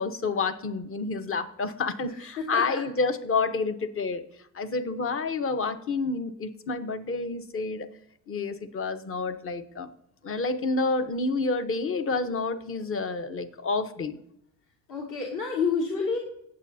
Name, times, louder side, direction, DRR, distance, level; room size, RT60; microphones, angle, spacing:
voice 1, 0.0-4.3 4.5-7.9 8.3-9.9 10.2-14.2, left 3 dB, 35° left, 9 dB, 1.1 m, -29 dB
voice 2, 2.1-2.8 14.9-16.2, left 5 dB, 55° left, -2 dB, 2.5 m, -29 dB
18.0 x 7.7 x 2.8 m, 0.74 s
supercardioid pair, 95°, 38 cm